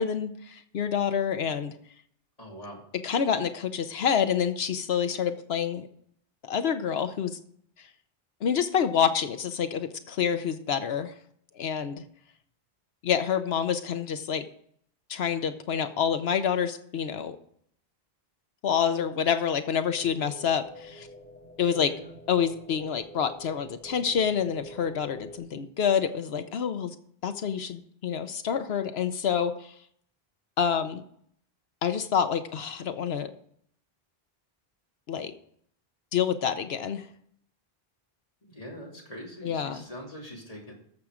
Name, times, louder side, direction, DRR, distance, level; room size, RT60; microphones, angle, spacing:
voice 1, 0.0-1.8 3.0-5.9 6.4-7.4 8.4-11.1 11.6-12.0 13.0-14.5 15.1-17.4 18.6-21.1 21.6-21.9 22.3-26.9 27.2-29.7 30.6-31.0 31.8-33.3 35.1-35.3 36.1-37.1 39.4-39.8, left 7 dB, 80° left, 10 dB, 1.0 m, -27 dB
voice 2, 2.4-2.8 21.7-22.1 38.5-40.7, equal, 35° left, -2 dB, 2.9 m, -43 dB
sound 1, 19.9-25.4, equal, 10° left, 2.7 m, -47 dB
13.0 x 7.2 x 5.0 m, 0.65 s
omnidirectional pair, 1.0 m